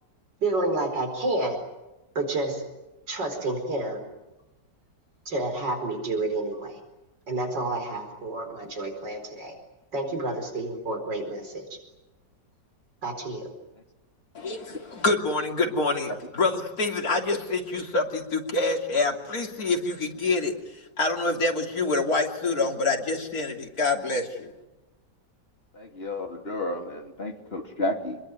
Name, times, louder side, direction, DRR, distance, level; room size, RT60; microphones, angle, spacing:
voice 1, 0.4-1.6 2.2-2.6 3.1-4.0 5.3-6.8 7.3-9.6 9.9-11.8 13.0-13.5, right 2 dB, 80° right, 4 dB, 5.2 m, -29 dB
voice 2, 14.4-24.5, left 3 dB, 55° left, 1 dB, 3.5 m, -26 dB
voice 3, 25.7-28.2, left 1 dB, 35° left, 2 dB, 3.2 m, -31 dB
27.5 x 21.5 x 9.4 m, 1.0 s
omnidirectional pair, 1.9 m